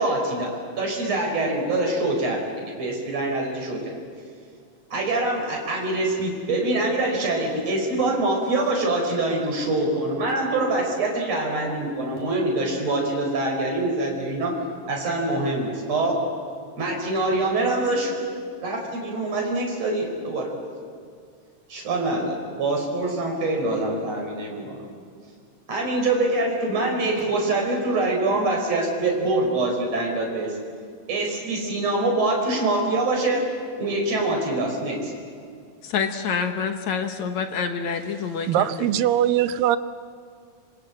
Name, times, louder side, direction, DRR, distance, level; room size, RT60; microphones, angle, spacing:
voice 1, 0.0-4.0 4.9-14.5 14.9-16.2 16.8-18.1 18.6-20.5 21.7-24.8 25.7-30.6 31.1-33.5 33.8-35.1, right 2 dB, 45° right, 0 dB, 5.9 m, -24 dB
voice 2, 35.8-39.0, left 6 dB, 60° left, 6 dB, 2.3 m, -27 dB
voice 3, 38.5-39.8, right 11 dB, 80° right, 12 dB, 2.5 m, -21 dB
26.0 x 24.0 x 8.7 m, 2.1 s
omnidirectional pair, 4.0 m